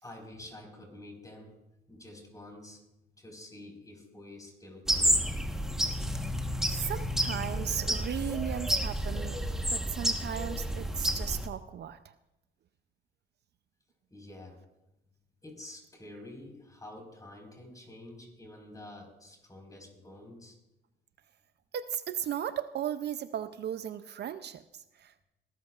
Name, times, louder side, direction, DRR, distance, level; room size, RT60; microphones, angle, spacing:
voice 1, 0.0-1.5 1.9-2.8 3.2-5.3 14.1-14.6 15.4-20.5, left 1 dB, 15° left, 2 dB, 4.5 m, -48 dB
sound 1, 4.9-11.5, equal, ahead, 1.1 m, -30 dB
voice 2, 6.7-12.1 21.7-25.2, right 9 dB, 60° right, 12 dB, 0.5 m, -36 dB
21.5 x 13.0 x 2.4 m, 0.93 s
cardioid pair, 90°, 20 cm